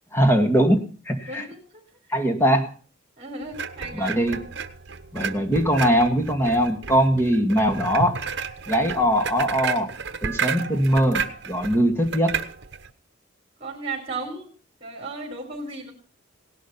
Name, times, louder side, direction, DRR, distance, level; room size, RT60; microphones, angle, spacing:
voice 1, 0.1-1.4 2.1-2.7 3.9-4.4 5.1-8.2 8.7-9.9 10.2-12.4, equal, 10° left, 5 dB, 2.0 m, -21 dB
voice 2, 1.2-1.8 3.2-4.2 13.6-14.5 14.8-15.9, right 3 dB, 30° right, 2 dB, 4.2 m, -35 dB
sound 1, 3.5-12.9, right 5 dB, 55° right, 1.0 m, -32 dB
17.5 x 11.5 x 5.6 m, 0.39 s
head